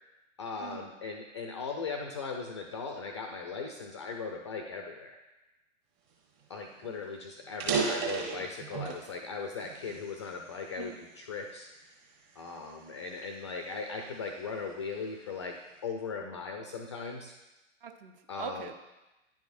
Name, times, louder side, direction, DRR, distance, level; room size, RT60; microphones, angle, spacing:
voice 1, 0.4-5.2 6.5-11.7 12.4-15.6 15.8-17.3 18.3-18.7, left 4 dB, 25° left, 3 dB, 0.3 m, -38 dB
sound 1, 6.4-6.5 6.8-6.9 7.4-9.1 9.6-10.9 11.5-11.7 12.4-14.4, right 5 dB, 30° right, 1.2 m, -34 dB
voice 2, 8.8-9.2 10.8-11.0 17.8-18.7, right 7 dB, 45° right, 6 dB, 0.7 m, -43 dB
10.0 x 4.7 x 2.5 m, 1.0 s
figure-of-eight pair, 105°, 38 cm